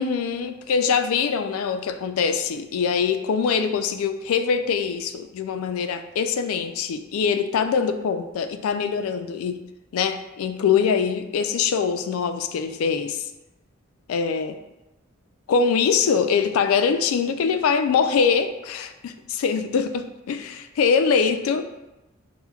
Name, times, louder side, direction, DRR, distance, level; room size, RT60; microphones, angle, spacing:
voice 1, 0.0-9.6 9.9-13.2 14.1-14.6 15.5-21.6, left 6 dB, 85° left, 8 dB, 0.3 m, -23 dB
5.9 x 2.1 x 2.3 m, 0.97 s
head